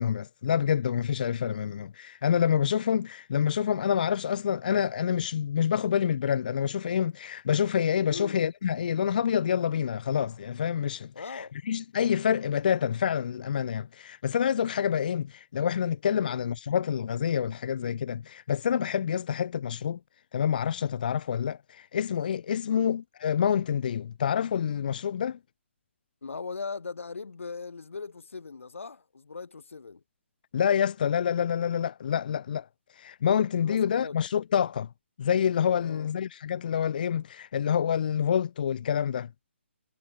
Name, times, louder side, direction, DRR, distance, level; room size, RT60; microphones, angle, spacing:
voice 1, 0.0-20.0 20.3-25.4 30.5-32.7 32.9-34.9 35.2-39.3, left 8 dB, 40° left, 0.5 m, -27 dB
voice 2, 8.0-8.4 11.1-11.5 16.1-16.4 22.6-22.9 26.2-30.0 33.6-34.2 35.8-36.1, left 4 dB, 85° left, 2.0 m, -39 dB
hypercardioid pair, 165°, 7 cm